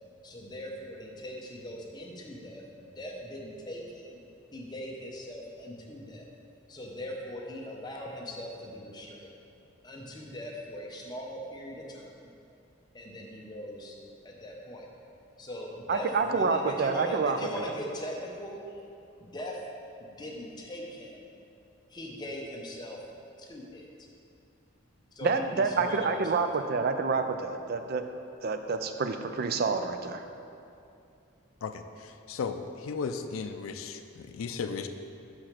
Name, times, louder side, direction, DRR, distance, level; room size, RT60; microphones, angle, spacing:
voice 1, 0.2-4.2 4.5-6.3 6.7-9.3 9.8-12.3 12.9-13.9 14.2-14.9 15.4-18.8 19.2-19.6 20.0-21.3 21.9-23.0 23.4-24.1 25.1-26.6, equal, 20° left, -1 dB, 0.8 m, -40 dB
voice 2, 15.9-17.7 25.2-28.0 28.4-30.2, right 4 dB, 50° right, 8 dB, 0.4 m, -28 dB
voice 3, 32.0-34.9, left 5 dB, 80° left, 7 dB, 0.4 m, -35 dB
5.8 x 4.9 x 5.8 m, 2.6 s
head